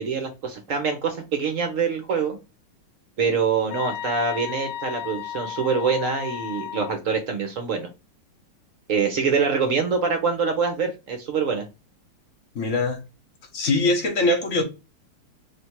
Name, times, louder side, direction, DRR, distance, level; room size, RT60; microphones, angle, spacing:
voice 1, 0.0-2.4 3.2-7.9 8.9-11.7, right 5 dB, 65° right, 0.8 m, -25 dB
sound 1, 3.7-7.0, left 11 dB, 85° left, 1.6 m, -34 dB
voice 2, 12.5-13.0 13.5-14.6, left 2 dB, 45° left, 1.1 m, -22 dB
3.4 x 2.8 x 4.3 m
omnidirectional pair, 2.4 m